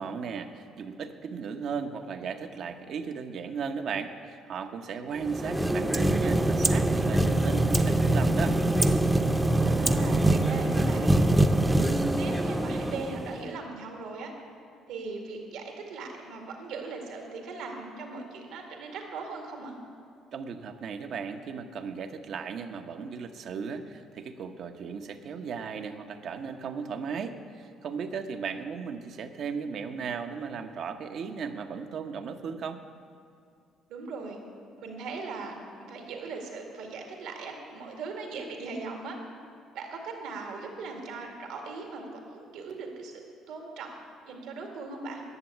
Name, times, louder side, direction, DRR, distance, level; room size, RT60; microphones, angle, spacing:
voice 1, 0.0-8.6 20.3-32.8, right 6 dB, 60° right, 6 dB, 0.9 m, -36 dB
sound 1, 5.2-13.5, right 1 dB, 10° right, 0.7 m, -24 dB
voice 2, 9.6-11.2 11.7-14.3 14.9-19.8 33.9-34.4 34.8-39.2 39.7-43.9 44.3-45.2, right 3 dB, 80° right, 2 dB, 2.0 m, -38 dB
11.0 x 7.0 x 8.6 m, 2.3 s
supercardioid pair, 80°, 0 cm